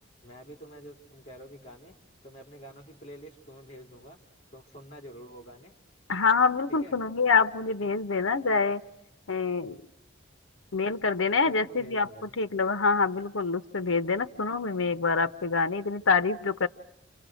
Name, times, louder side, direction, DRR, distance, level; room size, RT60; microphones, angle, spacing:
voice 1, 0.2-1.9 2.2-4.2 4.5-5.7 6.8-7.0 11.4-12.4, equal, 30° left, 3 dB, 3.5 m, -47 dB
voice 2, 6.1-8.8 9.3-9.8 10.7-16.7, left 4 dB, 85° left, 10 dB, 0.9 m, -26 dB
30.0 x 26.5 x 6.3 m, 0.84 s
head